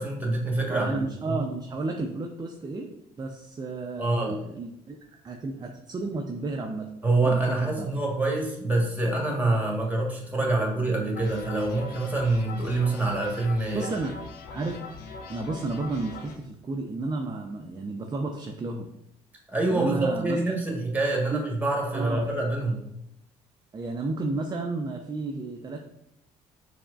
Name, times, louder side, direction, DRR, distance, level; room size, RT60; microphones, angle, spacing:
voice 1, 0.0-1.4 4.0-4.4 7.0-13.9 19.5-22.8, right 2 dB, 10° right, -1 dB, 1.2 m, -26 dB
voice 2, 0.7-2.9 3.2-5.0 5.2-6.9 7.2-7.4 7.8-7.9 10.4-10.5 13.7-14.2 14.4-14.8 15.3-18.9 19.7-20.6 21.3-21.4 21.9-22.3 23.7-25.8, right 3 dB, 25° right, 3 dB, 0.4 m, -32 dB
sound 1, 11.1-16.4, left 4 dB, 70° left, 0.5 m, -42 dB
4.3 x 2.1 x 2.4 m, 0.80 s
hypercardioid pair, 55°, 16 cm